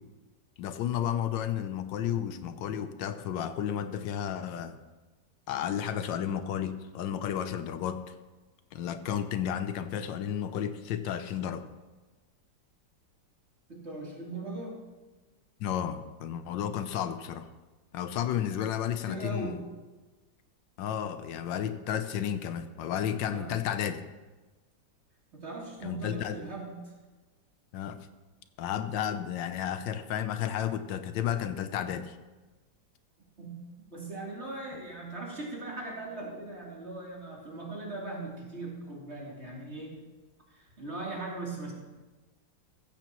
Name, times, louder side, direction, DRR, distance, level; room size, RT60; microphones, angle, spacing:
voice 1, 0.6-4.8 5.5-8.2 8.7-11.7 15.6-17.5 17.9-19.6 20.8-24.0 25.8-26.4 27.7-28.0 28.6-32.2, left 9 dB, 80° left, 10 dB, 1.4 m, -32 dB
voice 2, 13.7-14.8 19.0-19.6 23.3-23.6 25.3-26.9 33.4-33.6 33.9-40.0 40.5-41.7, right 2 dB, 35° right, -4 dB, 3.3 m, -39 dB
15.0 x 14.0 x 3.0 m, 1.2 s
omnidirectional pair, 2.0 m